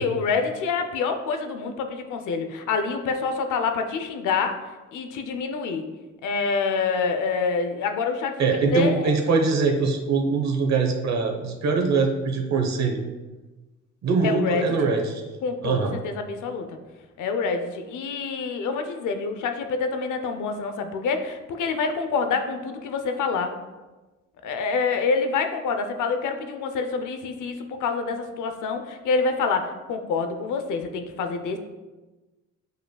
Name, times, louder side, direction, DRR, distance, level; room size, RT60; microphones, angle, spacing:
voice 1, 0.0-4.6 4.9-5.8 6.2-9.1 14.2-14.7 15.4-16.8 17.2-23.5 24.4-31.6, left 4 dB, 80° left, 6 dB, 0.7 m, -27 dB
voice 2, 8.4-13.0 14.0-15.2 15.6-15.9, right 4 dB, 60° right, 3 dB, 1.1 m, -23 dB
7.7 x 5.3 x 2.3 m, 1.2 s
cardioid pair, 90°, 30 cm